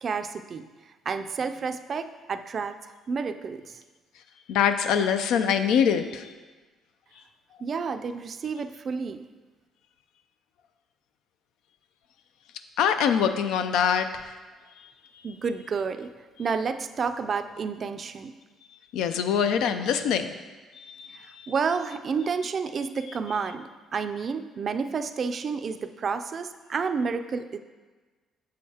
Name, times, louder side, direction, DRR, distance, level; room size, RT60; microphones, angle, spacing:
voice 1, 0.0-0.6 1.1-2.8 3.1-3.8 7.6-9.2 15.2-16.1 16.4-18.3 21.1-27.6, right 5 dB, 45° right, 9 dB, 0.4 m, -30 dB
voice 2, 4.5-6.3 12.8-14.2 18.9-20.3 20.8-21.5, left 8 dB, 85° left, 9 dB, 0.4 m, -24 dB
7.1 x 6.5 x 2.8 m, 1.3 s
cardioid pair, 100°, 0 cm